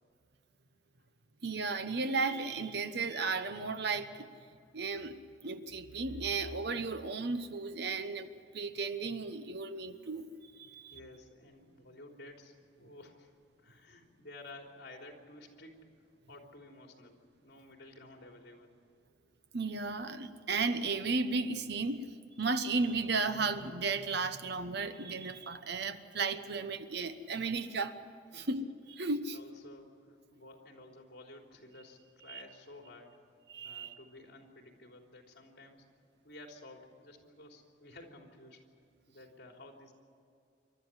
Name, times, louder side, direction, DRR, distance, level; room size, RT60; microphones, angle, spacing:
voice 1, 1.4-4.3 4.7-10.3 10.6-10.9 19.5-27.9 28.3-29.4 32.3-32.4 33.5-33.9, right 4 dB, 60° right, 10 dB, 1.1 m, -34 dB
voice 2, 10.9-15.9 16.3-18.7 28.3-28.5 29.3-33.2 33.6-35.9 36.2-38.6 39.1-39.9, left 2 dB, 60° left, 2 dB, 3.5 m, -53 dB
27.0 x 13.0 x 9.8 m, 2.4 s
head